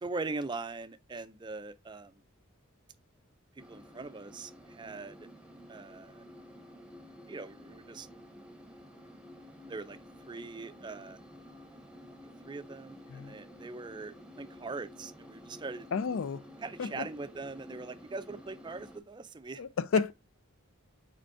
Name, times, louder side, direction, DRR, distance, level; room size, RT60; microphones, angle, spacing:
voice 1, 0.0-2.1 3.7-5.3 5.7-6.2 7.3-8.1 9.7-10.0 10.3-11.2 12.4-15.9 16.6-19.6, right 3 dB, 20° right, 0.4 m, -41 dB
sound 1, 3.6-19.0, left 1 dB, 5° right, 0.9 m, -52 dB
voice 2, 15.9-16.4 16.8-17.1 19.6-20.1, left 5 dB, 70° left, 0.4 m, -31 dB
5.0 x 4.5 x 4.6 m
head